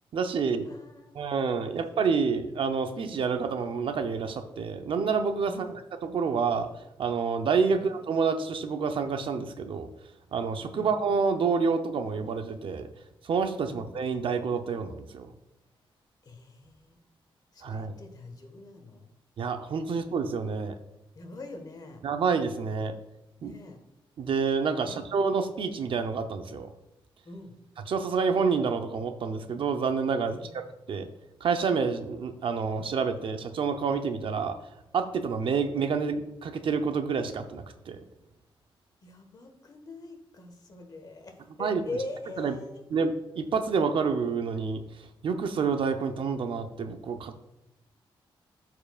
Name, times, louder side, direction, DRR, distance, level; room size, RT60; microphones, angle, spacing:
voice 1, 0.1-0.7 1.1-5.5 6.0-6.7 7.0-9.9 10.3-12.9 13.2-15.3 17.6-18.0 19.4-20.7 22.0-22.9 23.4-23.5 24.2-26.7 27.9-30.4 30.9-31.1 31.4-34.6 34.9-38.0 41.6-41.8 42.4-42.5 42.9-44.8 45.2-47.4, right 5 dB, 65° right, 7 dB, 0.6 m, -28 dB
voice 2, 0.6-1.2 1.7-1.8 5.5-5.8 7.7-7.9 10.7-10.9 13.6-13.8 16.2-17.0 17.5-19.1 19.9-20.0 21.1-22.0 23.4-23.8 24.8-25.0 27.2-27.5 30.3-30.5 39.0-42.8, left 2 dB, 45° left, 5 dB, 1.4 m, -42 dB
12.5 x 4.7 x 2.4 m, 0.92 s
wide cardioid pair, 120°, 9 cm